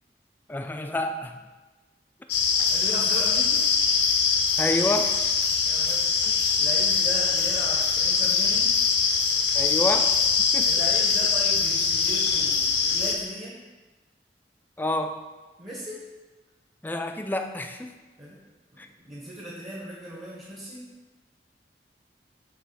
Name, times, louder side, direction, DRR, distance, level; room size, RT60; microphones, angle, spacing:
voice 1, 0.5-1.4 4.6-5.3 6.2-6.3 9.5-10.7 14.8-15.2 16.8-17.9 18.8-18.9, left 1 dB, 10° left, 6 dB, 0.4 m, -29 dB
sound 1, 2.3-13.2, left 5 dB, 80° left, 0.7 m, -23 dB
voice 2, 2.7-3.7 5.7-6.1 6.6-8.7 9.0-9.2 10.6-13.6 15.6-16.0 18.2-18.4 18.7-20.9, equal, 25° right, -5 dB, 1.1 m, -38 dB
7.3 x 3.1 x 5.6 m, 1.2 s
head